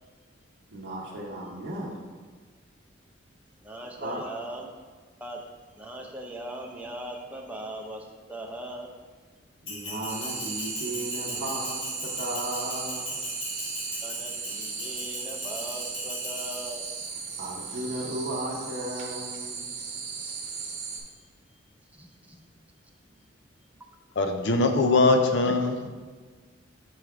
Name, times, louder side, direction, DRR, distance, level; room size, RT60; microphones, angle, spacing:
voice 1, 0.7-2.0 4.0-4.2 9.6-13.2 17.4-19.8, right 1 dB, 60° right, -5 dB, 0.7 m, -35 dB
voice 2, 3.6-4.7 5.1-5.5 5.8-8.9 14.0-16.9 21.9-22.4 23.7-23.9, right 1 dB, 10° right, 1 dB, 0.5 m, -40 dB
Bell, 9.7-17.1, left 2 dB, 90° left, 1.2 m, -39 dB
sound 1, 10.1-21.0, right 5 dB, 40° right, 0.9 m, -36 dB
voice 3, 24.2-25.9, left 2 dB, 60° left, 6 dB, 0.5 m, -22 dB
6.2 x 3.5 x 4.7 m, 1.4 s
head